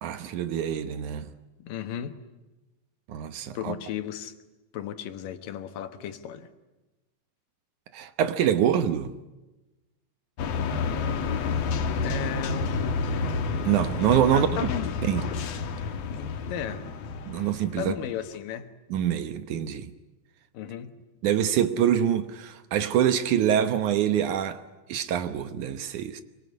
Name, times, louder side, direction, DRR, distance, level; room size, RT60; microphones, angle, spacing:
voice 1, 0.0-1.3 3.1-3.7 7.9-9.1 13.6-14.5 15.1-15.2 17.3-17.9 18.9-19.9 21.2-24.6 24.9-26.2, right 10 dB, 70° right, 2.3 m, -25 dB
voice 2, 1.6-2.2 3.5-4.3 4.7-6.5 12.0-13.3 14.3-14.9 15.3-15.5 16.1-16.9 17.8-18.7 20.5-20.9, left 9 dB, 75° left, 3.0 m, -35 dB
sound 1, 10.4-18.4, left 4 dB, 55° left, 2.2 m, -30 dB
25.5 x 23.5 x 9.7 m
omnidirectional pair, 4.0 m